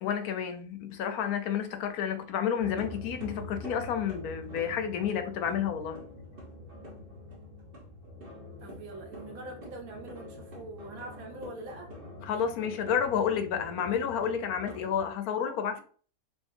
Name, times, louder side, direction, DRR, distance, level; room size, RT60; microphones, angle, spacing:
voice 1, 0.0-6.0 12.2-15.8, left 8 dB, 85° left, 1.1 m, -30 dB
sound 1, 2.6-15.1, left 1 dB, 45° right, 0.9 m, -45 dB
voice 2, 8.6-11.9, right 2 dB, 75° right, 1.3 m, -43 dB
3.8 x 2.7 x 2.5 m
omnidirectional pair, 1.5 m